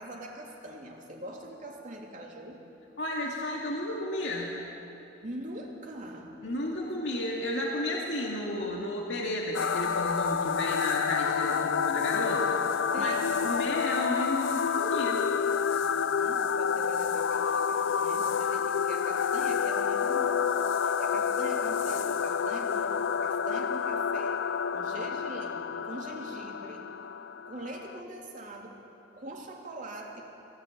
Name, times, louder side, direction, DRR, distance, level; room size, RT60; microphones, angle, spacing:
voice 1, 0.0-2.6 5.2-6.3 12.9-13.4 15.8-24.4 24.7-26.9 27.4-28.8 29.2-30.2, right 1 dB, 45° right, 0 dB, 3.1 m, -42 dB
voice 2, 3.0-4.5 6.4-15.3, left 1 dB, 70° left, -2 dB, 2.4 m, -32 dB
sound 1, 9.5-28.0, left 7 dB, 85° left, 0.4 m, -29 dB
23.0 x 17.5 x 8.8 m, 2.9 s
head